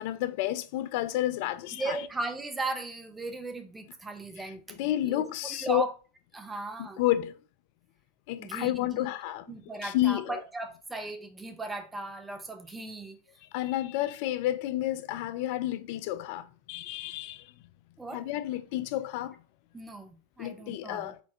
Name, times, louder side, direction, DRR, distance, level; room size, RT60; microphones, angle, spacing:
voice 1, 0.0-2.1 4.4-5.8 6.8-7.3 8.3-9.5 9.8-10.4 13.5-17.5 18.1-19.4 20.4-21.2, left 14 dB, 55° left, 0.3 m, -30 dB
voice 2, 1.7-5.9 6.3-7.0 8.4-9.1 9.5-13.2 18.0-18.2 19.7-21.1, right 3 dB, 15° right, 0.9 m, -37 dB
4.3 x 4.3 x 2.8 m
hypercardioid pair, 90°, 0 cm